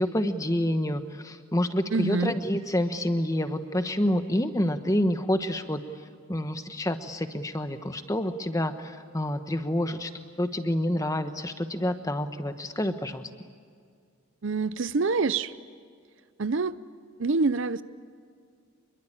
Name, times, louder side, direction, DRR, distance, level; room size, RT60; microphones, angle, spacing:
voice 1, 0.0-5.8 6.3-10.1 10.4-13.3, left 1 dB, 15° left, 9 dB, 1.1 m, -28 dB
voice 2, 1.9-2.3 14.4-15.5 16.4-16.8 17.2-17.8, right 4 dB, 60° right, 15 dB, 0.6 m, -26 dB
26.5 x 22.5 x 8.9 m, 2.1 s
head